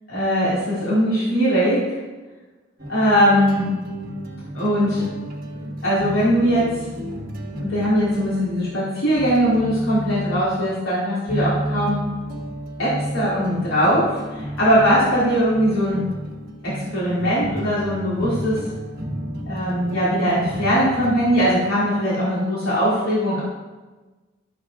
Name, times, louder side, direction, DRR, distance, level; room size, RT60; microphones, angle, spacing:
voice 1, 0.1-2.0 2.9-3.7 4.5-5.0 5.8-6.8 7.6-12.0 12.8-16.0 16.6-18.6 19.4-23.4, equal, 85° left, -8 dB, 3.2 m, -20 dB
sound 1, 2.8-10.7 11.3-22.1, right 1 dB, 45° right, 1.3 m, -32 dB
12.5 x 7.6 x 3.6 m, 1.2 s
head